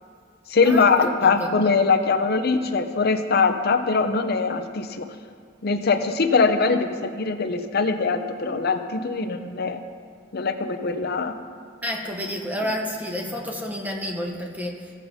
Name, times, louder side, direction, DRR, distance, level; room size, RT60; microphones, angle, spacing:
voice 1, 0.5-5.1 5.6-9.8 10.3-11.3, left 4 dB, 55° left, 8 dB, 0.6 m, -22 dB
voice 2, 1.2-1.5 11.8-14.9, equal, 10° right, 0 dB, 1.0 m, -30 dB
16.0 x 7.3 x 2.7 m, 2.1 s
head